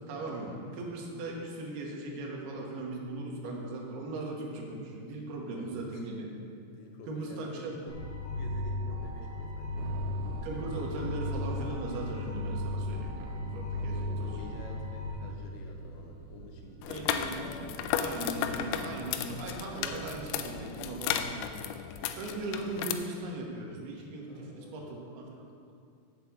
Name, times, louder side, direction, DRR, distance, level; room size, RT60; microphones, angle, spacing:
voice 1, 0.1-6.3 7.1-7.8 10.4-14.4 16.9-21.9 22.2-25.7, right 2 dB, 65° right, -1 dB, 2.8 m, -39 dB
voice 2, 5.4-6.1 6.7-8.0 8.3-10.0 13.7-17.2 24.3-25.0, left 3 dB, 70° left, 1 dB, 3.1 m, -49 dB
sound 1, 7.9-15.1, left 2 dB, 50° left, 2.1 m, -35 dB
sound 2, 9.8-21.5, right 5 dB, 90° right, 3.3 m, -48 dB
sound 3, 16.8-22.9, left 9 dB, 90° left, 3.2 m, -34 dB
8.2 x 6.7 x 8.1 m, 2.3 s
omnidirectional pair, 5.7 m